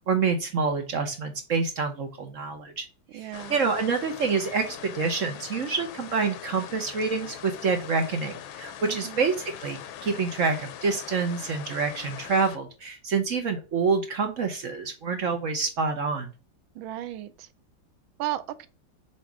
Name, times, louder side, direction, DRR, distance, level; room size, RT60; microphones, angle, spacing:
voice 1, 0.0-2.9 3.2-9.3 9.6-16.3, right 4 dB, 55° right, 1.0 m, -27 dB
voice 2, 3.1-3.6 8.8-9.2 16.7-17.5 18.2-18.7, right 14 dB, 90° right, 1.5 m, -35 dB
sound 1, 3.3-12.6, left 10 dB, 85° left, 1.5 m, -42 dB
7.4 x 2.8 x 4.6 m
omnidirectional pair, 2.1 m